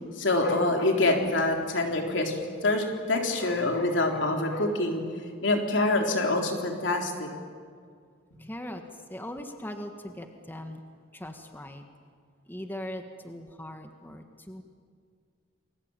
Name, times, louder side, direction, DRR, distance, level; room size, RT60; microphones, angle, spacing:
voice 1, 0.1-5.0 5.4-7.3 8.3-8.4, left 2 dB, 75° left, 2 dB, 3.9 m, -26 dB
voice 2, 8.4-8.8 9.1-10.8 11.1-11.8 12.5-14.6, left 1 dB, 10° left, 5 dB, 1.6 m, -40 dB
29.0 x 21.5 x 9.0 m, 2.1 s
head